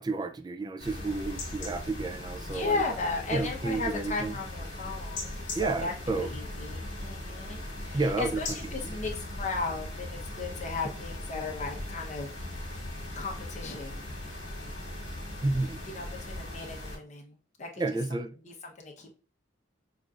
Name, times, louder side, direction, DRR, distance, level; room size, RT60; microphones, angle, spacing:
voice 1, 0.0-2.8 3.3-4.4 5.5-6.3 7.9-9.0 15.0-15.2 15.4-15.8 17.8-18.3, right 3 dB, 20° right, 0.3 m, -31 dB
sound 1, 0.8-17.0, left 1 dB, 65° left, 1.5 m, -39 dB
voice 2, 2.5-12.3 13.1-14.0 15.8-17.8 18.4-19.1, left 3 dB, 35° left, 0.9 m, -36 dB
6.1 x 2.6 x 2.4 m
head